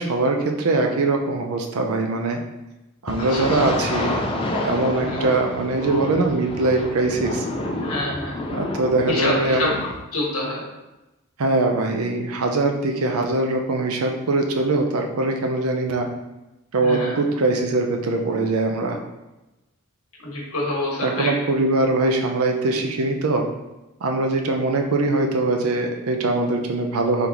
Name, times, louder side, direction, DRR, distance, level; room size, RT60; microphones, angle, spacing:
voice 1, 0.0-2.4 3.0-7.5 8.5-9.8 11.4-16.1 16.7-19.0 21.0-23.5 24.0-27.3, right 2 dB, 75° right, 3 dB, 0.6 m, -22 dB
sound 1, 3.1-10.0, left 1 dB, 25° left, 0.4 m, -29 dB
voice 2, 5.0-5.4 7.8-8.3 9.1-9.7 10.1-10.6 16.8-17.1 20.2-21.3, left 1 dB, 80° left, -3 dB, 1.3 m, -26 dB
3.9 x 3.4 x 2.9 m, 1.0 s
head